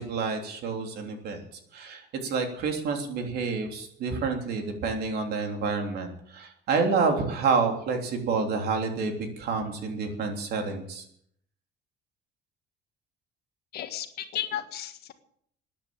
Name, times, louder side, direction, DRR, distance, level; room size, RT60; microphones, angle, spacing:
voice 1, 0.0-1.4 1.7-11.0, right 4 dB, 55° right, 4 dB, 3.3 m, -28 dB
voice 2, 13.7-15.1, left 11 dB, 55° left, 8 dB, 1.7 m, -34 dB
13.5 x 10.5 x 8.8 m, 0.68 s
cardioid pair, 160°, 20 cm